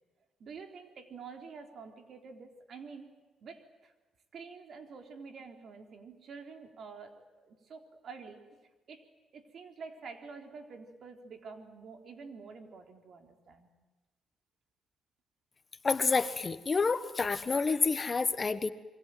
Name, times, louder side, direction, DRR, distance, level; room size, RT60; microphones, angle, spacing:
voice 1, 0.4-3.1 3.4-3.9 4.3-9.1 9.3-13.7, right 5 dB, 60° right, 5 dB, 3.9 m, -48 dB
voice 2, 15.8-18.7, left 4 dB, 30° left, 12 dB, 1.4 m, -28 dB
27.5 x 23.5 x 9.3 m, 1.2 s
cardioid pair, 90°, 0 cm